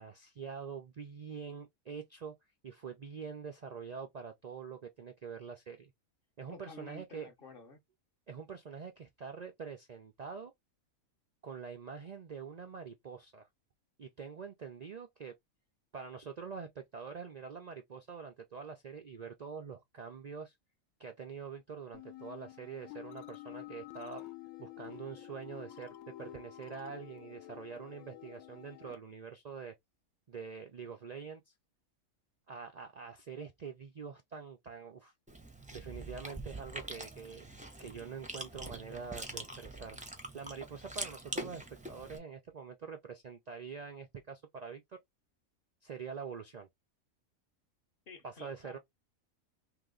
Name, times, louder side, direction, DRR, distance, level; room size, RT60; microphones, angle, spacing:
voice 1, 0.0-2.3 2.6-5.9 6.4-7.3 8.3-10.5 11.4-13.5 14.0-15.3 15.9-20.5 21.0-24.2 24.6-29.7 30.3-31.4 32.5-35.1 35.7-37.4 37.8-40.0 40.3-45.0 45.8-46.7 48.2-48.8, right 6 dB, 80° right, 0.3 m, -45 dB
voice 2, 6.5-7.8 48.1-48.8, left 3 dB, 45° left, 0.9 m, -51 dB
sound 1, 21.9-29.0, left 14 dB, 80° left, 1.1 m, -49 dB
Chewing mastication, 35.3-42.2, right 1 dB, 10° right, 0.4 m, -44 dB
3.0 x 3.0 x 3.6 m
omnidirectional pair, 1.5 m